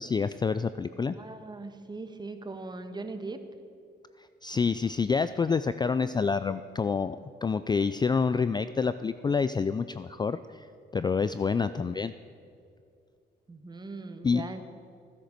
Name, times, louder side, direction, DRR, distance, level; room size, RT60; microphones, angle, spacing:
voice 1, 0.0-1.1 4.4-10.7 10.9-12.1 14.2-14.4, left 5 dB, 20° left, 13 dB, 0.3 m, -27 dB
voice 2, 1.1-3.4 5.5-5.6 13.5-14.6, right 3 dB, 20° right, 8 dB, 1.3 m, -40 dB
16.0 x 10.0 x 6.7 m, 2.4 s
cardioid pair, 90°, 20 cm